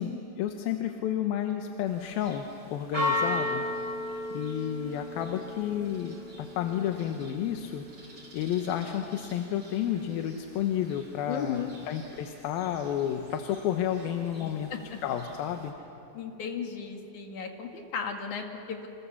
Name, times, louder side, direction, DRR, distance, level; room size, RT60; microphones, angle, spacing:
voice 1, 0.0-3.7 4.3-7.8 8.3-14.7 15.0-15.7, left 10 dB, 90° left, 5 dB, 2.9 m, -31 dB
Church bell, 1.9-15.7, left 1 dB, 35° right, 4.7 m, -38 dB
voice 2, 11.3-11.7 14.4-15.0 16.1-18.9, left 7 dB, 60° left, 3 dB, 3.3 m, -35 dB
29.5 x 27.0 x 7.1 m, 2.9 s
omnidirectional pair, 4.1 m